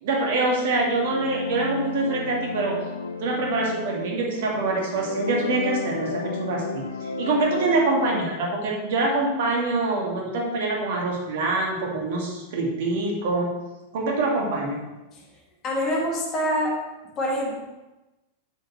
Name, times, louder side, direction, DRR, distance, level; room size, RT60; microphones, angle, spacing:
voice 1, 0.0-2.8 3.2-13.6 13.9-14.8, right 2 dB, 55° right, -1 dB, 2.0 m, -25 dB
sound 1, 0.6-8.5, left 4 dB, 75° left, 0.6 m, -33 dB
voice 2, 15.6-16.8 17.2-17.5, equal, 30° left, -2 dB, 2.1 m, -25 dB
8.7 x 8.1 x 3.2 m, 1.0 s
figure-of-eight pair, 90°, 0 cm